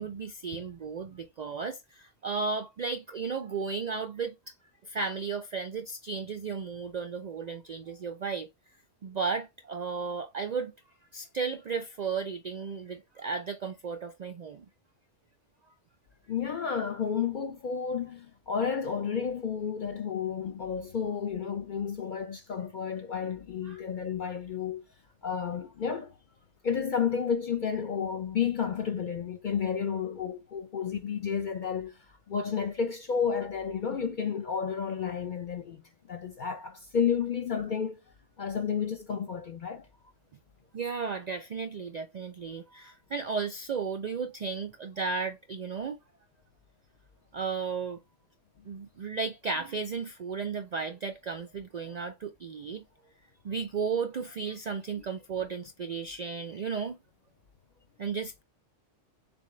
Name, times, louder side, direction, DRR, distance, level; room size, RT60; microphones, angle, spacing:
voice 1, 0.0-4.5 4.8-8.5 9.0-10.7 11.1-14.7 23.6-23.8 40.7-46.0 47.3-48.0 48.7-52.8 53.4-57.0 58.0-58.4, right 5 dB, 70° right, 0.4 m, -34 dB
voice 2, 16.3-24.8 25.2-26.1 26.6-32.0 32.3-35.8 36.1-38.0 38.4-39.9, left 7 dB, 55° left, 0.5 m, -31 dB
6.9 x 2.3 x 3.1 m
omnidirectional pair, 1.2 m